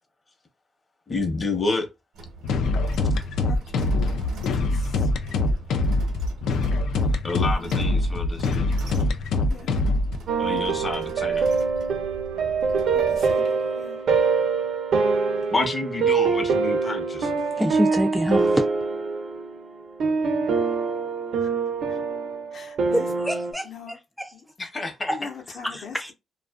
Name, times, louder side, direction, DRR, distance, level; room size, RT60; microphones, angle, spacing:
voice 1, 1.1-1.9 7.2-8.7 10.4-11.5 15.5-17.4 24.6-25.1, left 3 dB, 30° left, 0.8 m, -29 dB
sound 1, 2.1-13.3, right 2 dB, 85° right, 0.8 m, -41 dB
sound 2, 2.4-10.2, left 2 dB, 75° left, 0.3 m, -23 dB
voice 2, 3.4-5.1 7.4-7.7 9.5-9.8 12.9-14.0 21.4-21.5 21.9-22.0 22.5-23.1 23.6-24.0 24.3-24.7 25.1-26.1, left 6 dB, 60° left, 0.7 m, -43 dB
sound 3, 10.3-23.5, right 4 dB, 65° right, 0.5 m, -24 dB
voice 3, 17.5-18.6 22.9-23.7 24.2-24.3 25.1-25.3 25.6-26.1, equal, ahead, 0.3 m, -26 dB
2.4 x 2.4 x 2.3 m
cardioid pair, 90°, 0 cm